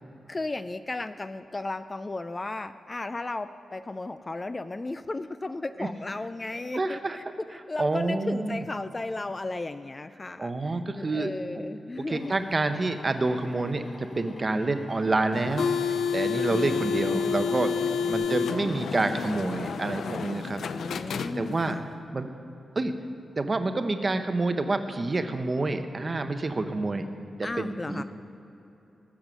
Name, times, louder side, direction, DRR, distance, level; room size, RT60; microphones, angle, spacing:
voice 1, 0.3-7.2 7.5-12.3 16.5-17.6 18.0-18.8 20.7-21.9 27.4-28.0, left 2 dB, 25° left, 11 dB, 0.3 m, -35 dB
voice 2, 6.7-7.2 7.8-8.6 10.4-11.6 12.1-17.8 18.1-20.6 21.4-21.8 22.1-22.3 22.8-22.9 23.4-27.1 27.4-28.0, right 2 dB, 30° right, 8 dB, 0.7 m, -28 dB
Drill, 12.1-18.1, left 2 dB, 40° left, 1.1 m, -48 dB
sound 1, 15.3-21.8, left 6 dB, 85° left, 0.5 m, -30 dB
19.0 x 7.2 x 6.1 m, 3.0 s
wide cardioid pair, 145°, 0 cm